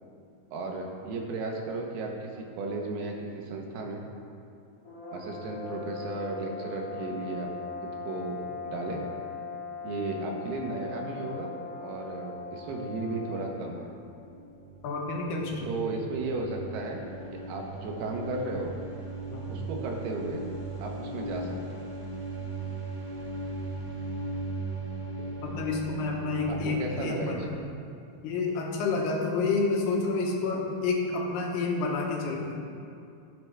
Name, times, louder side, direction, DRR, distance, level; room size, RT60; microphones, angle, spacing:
voice 1, 0.5-4.0 5.1-7.5 7.8-9.0 9.8-11.5 11.8-13.9 15.6-17.0 17.3-18.7 19.5-20.4 20.8-21.6 26.5-27.4, right 3 dB, 80° right, 1 dB, 3.0 m, -34 dB
sound 1, 4.8-13.8, left 4 dB, 30° left, 1.7 m, -40 dB
sound 2, 12.9-27.1, right 2 dB, 45° right, 2.2 m, -38 dB
voice 2, 14.8-15.7 19.3-19.5 25.4-27.5 28.2-32.6, left 3 dB, 80° left, -1 dB, 3.2 m, -29 dB
15.0 x 7.6 x 3.4 m, 2.6 s
omnidirectional pair, 4.6 m